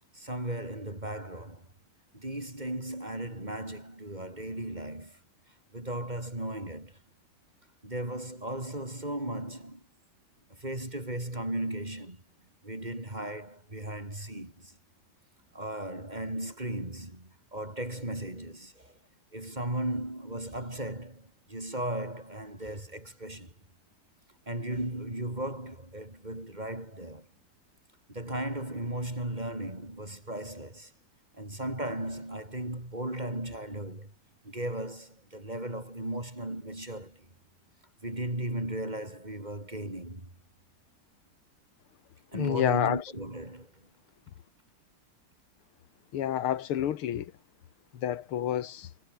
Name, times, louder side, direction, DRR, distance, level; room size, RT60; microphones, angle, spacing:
voice 1, 0.1-1.7 2.1-5.2 5.7-7.0 7.8-9.8 10.5-12.2 12.6-14.7 15.5-18.9 19.3-23.5 24.5-27.3 28.1-30.9 31.3-34.1 34.4-37.2 38.0-40.3 42.3-43.7, right 1 dB, 20° right, 4.5 m, -36 dB
voice 2, 42.3-43.0 46.1-47.3 48.0-48.9, left 10 dB, 85° left, 2.2 m, -29 dB
omnidirectional pair, 2.3 m